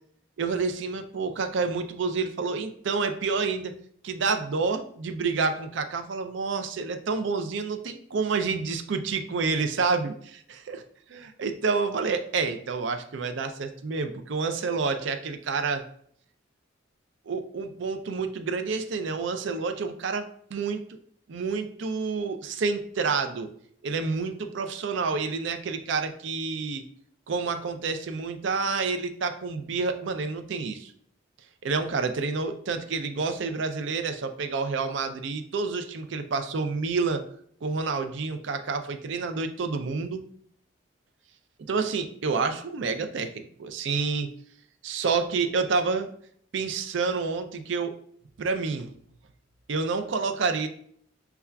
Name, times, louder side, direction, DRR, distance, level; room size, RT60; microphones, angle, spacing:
voice 1, 0.4-3.7 4.0-10.8 11.1-15.9 17.3-21.0 21.3-23.5 23.8-26.9 27.3-30.9 31.6-37.3 37.6-40.2 41.6-44.3 44.8-46.1 46.5-47.9 48.4-48.9 49.7-50.7, right 4 dB, 75° right, 8 dB, 0.4 m, -29 dB
6.8 x 2.3 x 2.2 m, 0.63 s
head